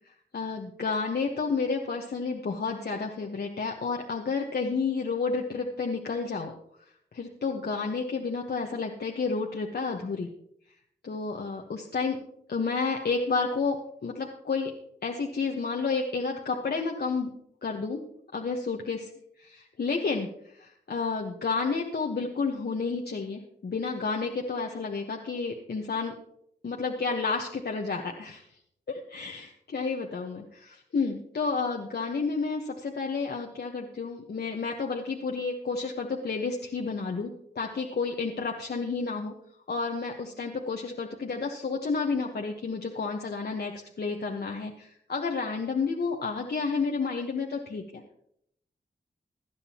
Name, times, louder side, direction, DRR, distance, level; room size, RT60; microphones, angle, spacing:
voice 1, 0.3-6.5 7.1-10.3 11.0-12.2 12.5-14.7 15.0-17.3 17.6-18.0 18.3-19.1 19.4-20.3 20.5-26.1 26.6-28.5 28.9-37.3 37.5-39.3 39.7-48.0, left 4 dB, 60° left, 1 dB, 1.3 m, -31 dB
17.0 x 10.5 x 3.0 m, 0.72 s
supercardioid pair, 40°, 19 cm